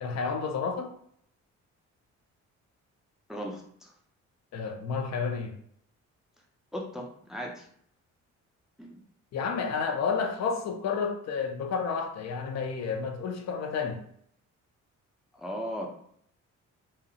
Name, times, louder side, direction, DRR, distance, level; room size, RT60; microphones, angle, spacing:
voice 1, 0.0-0.9 4.5-5.5 9.3-14.0, left 5 dB, 60° left, 0.5 m, -31 dB
voice 2, 3.3-3.9 6.7-7.7 8.8-9.0 15.3-15.9, equal, ahead, 0.4 m, -37 dB
2.7 x 2.0 x 2.6 m
cardioid pair, 90°, 30 cm